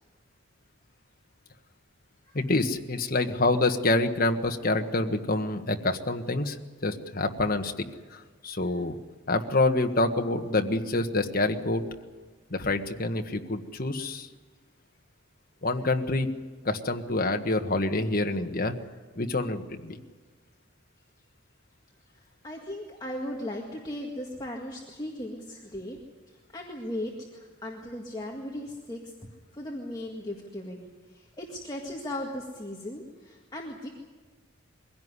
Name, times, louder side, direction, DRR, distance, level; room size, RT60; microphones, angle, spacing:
voice 1, 2.3-6.6 6.8-7.8 8.1-8.9 9.3-11.8 12.5-14.3 15.6-16.3 16.6-18.8 19.1-20.0, left 2 dB, 45° left, 5 dB, 1.5 m, -27 dB
voice 2, 22.1-26.0 26.3-29.1 29.5-33.9, left 1 dB, 20° left, -1 dB, 1.9 m, -37 dB
22.5 x 16.5 x 9.8 m, 1.4 s
head